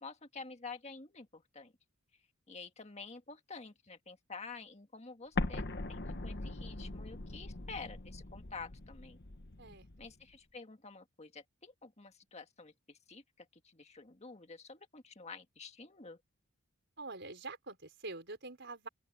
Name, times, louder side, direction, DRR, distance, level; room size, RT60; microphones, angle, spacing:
voice 1, 0.0-1.7 2.5-5.6 5.9-9.2 10.0-16.2, left 4 dB, 30° left, 1.8 m, -49 dB
Explosion, 5.4-10.1, left 2 dB, 50° left, 1.2 m, -40 dB
voice 2, 17.0-18.9, right 3 dB, 55° right, 5.2 m, -45 dB
open air
head